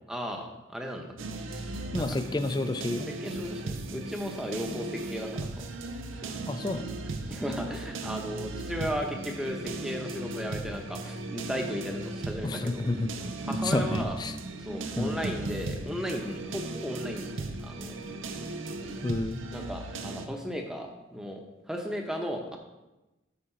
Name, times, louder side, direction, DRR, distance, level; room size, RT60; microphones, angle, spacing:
voice 1, 0.1-1.2 1.5-2.2 3.1-5.7 6.2-6.3 7.3-12.9 13.4-14.2 14.6-18.0 18.8-19.0 19.5-21.4 21.7-22.6, equal, 5° right, 2 dB, 0.8 m, -36 dB
sound 1, 1.2-20.3, right 2 dB, 90° right, 0.7 m, -37 dB
voice 2, 1.9-3.1 6.5-6.9 12.4-13.1 13.5-14.3 15.0-15.2 19.0-19.4, left 2 dB, 20° left, 10 dB, 0.3 m, -30 dB
8.4 x 5.0 x 4.4 m, 1.0 s
head